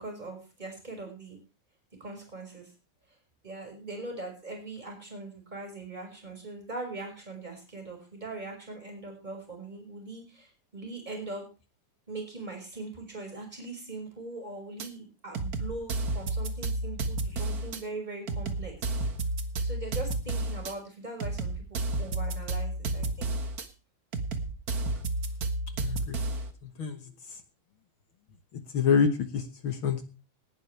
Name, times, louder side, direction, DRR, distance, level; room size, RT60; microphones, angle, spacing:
voice 1, 0.0-1.4 2.0-2.7 3.4-11.5 12.1-18.7 19.6-23.3, right 2 dB, 10° right, 2 dB, 5.7 m, -41 dB
sound 1, 14.8-14.9 15.3-17.8 18.3-20.7 21.2-23.7 24.1-26.5, right 2 dB, 50° right, 1.1 m, -31 dB
voice 2, 25.8-26.2 26.6-27.0 27.3-27.4 28.5-30.0, left 6 dB, 55° left, 9 dB, 1.5 m, -27 dB
19.0 x 12.0 x 3.3 m, 0.32 s
omnidirectional pair, 3.7 m